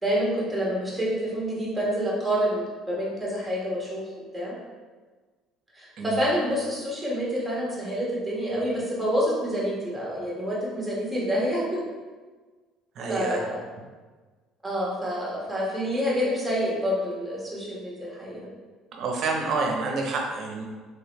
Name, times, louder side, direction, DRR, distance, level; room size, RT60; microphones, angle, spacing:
voice 1, 0.0-4.6 5.7-11.8 13.1-13.6 14.6-18.5, equal, 5° right, -5 dB, 1.2 m, -28 dB
voice 2, 13.0-13.4 18.9-20.6, right 3 dB, 55° right, 1 dB, 0.7 m, -28 dB
3.8 x 3.3 x 3.0 m, 1.4 s
cardioid pair, 120°, 0 cm